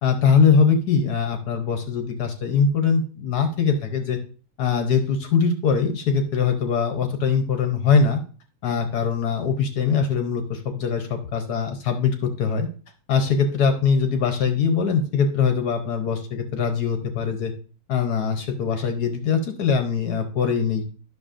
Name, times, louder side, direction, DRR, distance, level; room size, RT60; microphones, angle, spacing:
voice 1, 0.0-4.2 4.6-8.2 8.6-12.7 13.1-17.5 17.9-20.8, left 6 dB, 65° left, 6 dB, 1.0 m, -22 dB
10.5 x 6.2 x 2.4 m, 0.39 s
omnidirectional pair, 2.4 m